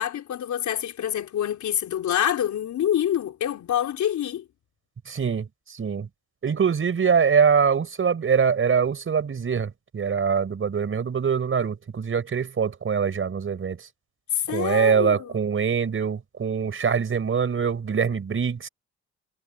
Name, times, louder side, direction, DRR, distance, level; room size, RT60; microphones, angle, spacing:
voice 1, 0.0-4.4 14.3-15.4, left 10 dB, 70° left, 4.0 m, -26 dB
voice 2, 5.1-6.1 6.4-13.9 14.5-18.7, right 6 dB, 45° right, 5.0 m, -23 dB
cardioid pair, 90°, 30 cm